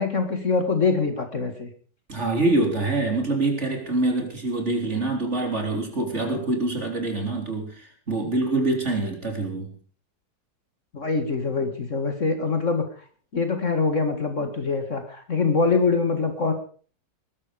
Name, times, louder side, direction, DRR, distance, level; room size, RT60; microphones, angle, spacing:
voice 1, 0.0-1.7 10.9-12.8 13.3-16.5, left 4 dB, 45° left, 7 dB, 2.3 m, -24 dB
voice 2, 2.1-9.7, right 2 dB, 40° right, 3 dB, 4.2 m, -25 dB
20.5 x 12.0 x 5.2 m, 0.43 s
omnidirectional pair, 1.9 m